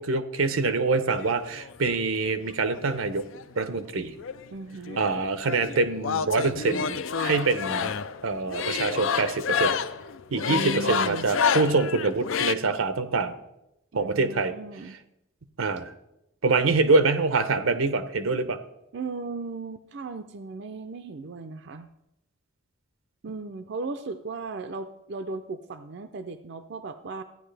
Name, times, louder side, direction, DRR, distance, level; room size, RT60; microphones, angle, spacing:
voice 1, 0.0-3.3 3.6-4.1 5.0-7.9 8.2-9.8 10.3-13.4 13.9-14.5 15.6-15.9 16.4-18.6, right 3 dB, 85° right, 11 dB, 0.8 m, -25 dB
sound 1, 1.1-1.9 2.7-3.9 4.2-12.5, left 6 dB, 75° left, 0.5 m, -29 dB
voice 2, 4.5-5.1 10.5-11.3 13.9-15.0 18.9-21.9 23.2-27.2, right 3 dB, 55° right, 8 dB, 0.5 m, -36 dB
14.5 x 9.6 x 3.3 m, 0.86 s
head